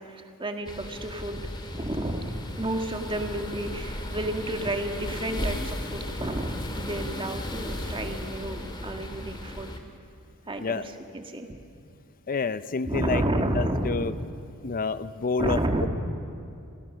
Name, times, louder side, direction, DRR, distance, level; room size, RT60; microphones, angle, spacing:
voice 1, 0.0-1.4 1.7-9.7 10.5-11.6 12.8-14.2 15.4-15.9, right 1 dB, 25° right, 4 dB, 1.9 m, -31 dB
sound 1, 0.7-9.8, left 1 dB, 20° left, 2.2 m, -35 dB
voice 2, 12.3-14.1 14.6-15.9, left 4 dB, 40° left, 13 dB, 0.6 m, -29 dB
27.5 x 25.5 x 6.3 m, 2.5 s
head